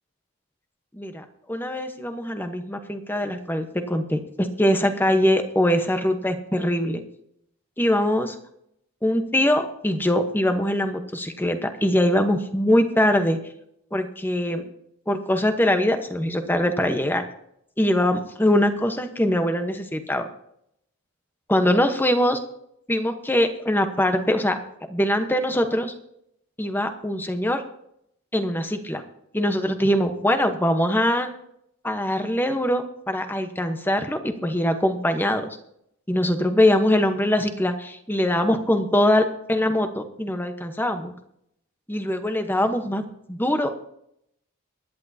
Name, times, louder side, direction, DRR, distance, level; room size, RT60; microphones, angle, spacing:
voice 1, 0.9-7.0 7.8-8.3 9.0-13.4 13.9-14.6 15.1-17.2 17.8-20.3 21.5-22.4 22.9-24.6 24.9-25.9 26.6-27.6 28.3-29.0 29.3-31.3 31.8-35.5 36.1-41.1 41.9-43.0 43.3-43.7, left 1 dB, 10° left, 6 dB, 1.1 m, -22 dB
23.5 x 10.5 x 2.8 m, 0.75 s
head